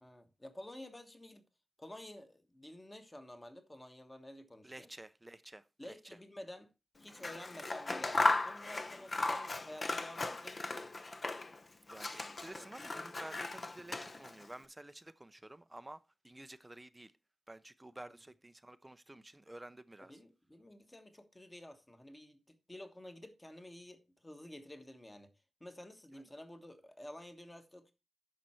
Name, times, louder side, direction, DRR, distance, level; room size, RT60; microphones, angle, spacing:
voice 1, 0.0-1.4 1.8-4.9 5.8-6.7 7.0-8.2 8.4-10.9 18.0-18.1 20.1-25.3 25.6-27.9, left 1 dB, 15° left, 1.3 m, -51 dB
voice 2, 4.6-5.9 11.9-17.1 17.5-20.1 26.1-26.2, right 1 dB, 15° right, 0.4 m, -51 dB
Scissors, 7.1-11.6 11.9-14.5, left 2 dB, 35° left, 0.6 m, -36 dB
10.5 x 6.5 x 4.4 m
wide cardioid pair, 150°, 0 cm